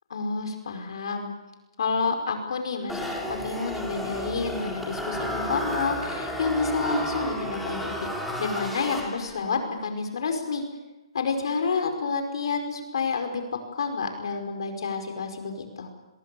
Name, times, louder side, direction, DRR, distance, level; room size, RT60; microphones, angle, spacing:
voice 1, 0.1-1.3 1.8-8.1 8.4-10.6 11.1-15.9, left 4 dB, 65° left, 5 dB, 5.0 m, -29 dB
sound 1, 2.9-9.5, equal, ahead, 3.8 m, -32 dB
28.5 x 21.5 x 7.1 m, 1.0 s
hypercardioid pair, 140°, 3 cm